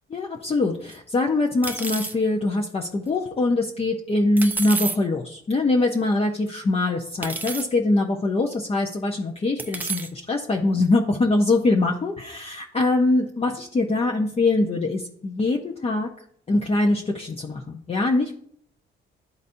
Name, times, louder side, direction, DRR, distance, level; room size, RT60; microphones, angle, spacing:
voice 1, 0.1-16.1 16.5-18.3, left 2 dB, 30° left, 1 dB, 0.8 m, -23 dB
sound 1, 0.9-1.0 1.6-2.2 4.4-5.0 5.9-6.0 7.2-7.7 8.5-8.6 9.6-10.1, right 3 dB, 10° right, 0.6 m, -30 dB
12.0 x 4.1 x 2.6 m, 0.65 s
cardioid pair, 90°, 20 cm